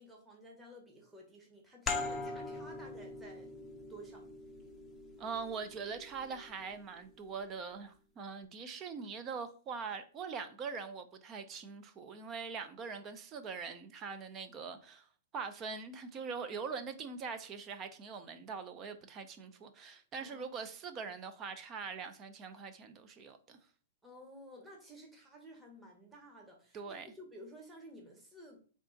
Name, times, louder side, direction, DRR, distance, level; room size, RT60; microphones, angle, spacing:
voice 1, 0.0-3.5 3.9-4.3 20.2-20.6 24.0-28.6, equal, 10° right, 1.0 m, -53 dB
sound 1, 1.9-7.1, left 3 dB, 15° left, 0.6 m, -42 dB
voice 2, 5.2-23.6 26.7-27.1, right 5 dB, 25° right, 0.5 m, -43 dB
3.6 x 2.4 x 3.8 m
hypercardioid pair, 130°, 0 cm